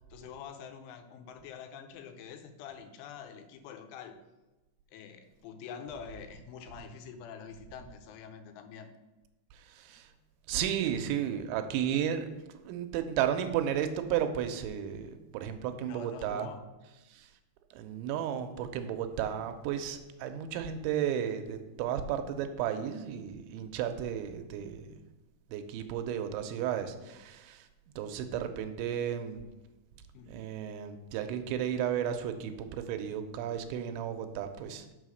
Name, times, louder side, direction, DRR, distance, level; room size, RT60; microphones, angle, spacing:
voice 1, 0.1-4.2 4.9-8.9 10.9-11.0 15.8-16.6 30.1-30.4, left 7 dB, 85° left, 7 dB, 3.2 m, -46 dB
voice 2, 9.5-10.1 10.5-12.3 12.7-16.5 17.1-17.3 17.7-25.0 25.5-27.7 28.0-29.4 30.3-34.9, right 9 dB, 85° right, 8 dB, 3.0 m, -33 dB
6.9 x 5.6 x 6.3 m, 1.1 s
omnidirectional pair, 5.4 m